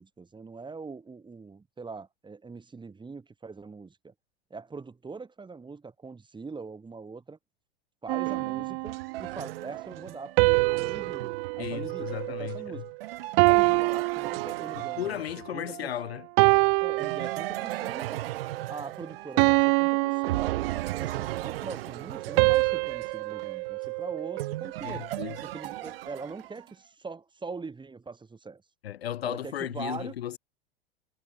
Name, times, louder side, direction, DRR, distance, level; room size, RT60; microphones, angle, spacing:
voice 1, 0.0-4.1 4.5-7.4 8.0-12.8 13.4-15.2 15.5-15.9 16.8-18.2 18.7-20.5 21.0-25.1 25.4-28.6 29.2-30.1, right 4 dB, 15° right, 4.3 m, -42 dB
sound 1, 8.1-9.4 10.4-12.9 13.4-15.1 15.7-15.9 16.4-17.9 18.4-18.7 19.4-21.3 22.4-24.8, right 40 dB or more, 45° right, 0.5 m, -26 dB
sound 2, 8.3-15.7 17.0-19.8 20.2-26.7, right 15 dB, 65° right, 1.3 m, -37 dB
voice 2, 11.6-12.8 14.8-16.3 24.8-25.4 28.8-30.4, left 11 dB, 70° left, 4.3 m, -35 dB
figure-of-eight pair, 90°, 31 cm